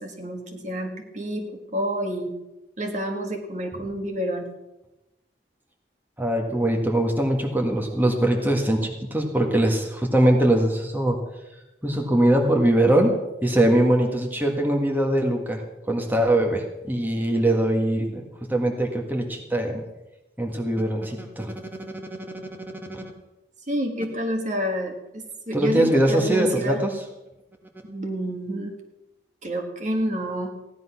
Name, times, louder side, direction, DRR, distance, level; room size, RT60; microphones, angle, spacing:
voice 1, 0.0-2.3 2.8-4.5 23.7-26.8 27.9-28.7 29.4-30.5, equal, 45° right, 3 dB, 1.8 m, -28 dB
voice 2, 6.2-11.2 11.8-13.1 13.4-15.6 15.9-18.2 18.5-19.8 20.4-21.5 22.9-23.0 25.5-26.9, right 1 dB, 10° right, 2 dB, 1.8 m, -22 dB
16.0 x 10.5 x 5.9 m, 0.97 s
head